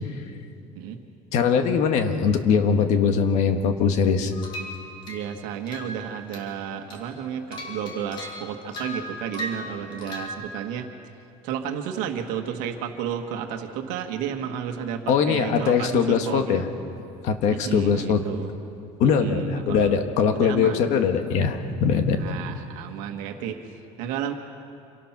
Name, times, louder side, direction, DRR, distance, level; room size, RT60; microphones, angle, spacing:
voice 1, 1.3-4.3 15.1-16.7 17.2-18.2 19.0-22.2, left 6 dB, 55° left, 6 dB, 1.5 m, -21 dB
sound 1, 4.3-5.3 5.7-6.0 6.3-6.6 6.9-10.3, left 1 dB, 35° left, 3.1 m, -37 dB
voice 2, 5.1-10.9 11.4-16.7 17.5-18.5 19.2-20.0 20.3-20.9 22.2-24.3, right 8 dB, 75° right, 5 dB, 1.6 m, -32 dB
26.5 x 18.5 x 6.0 m, 2.6 s
cardioid pair, 175°, 14 cm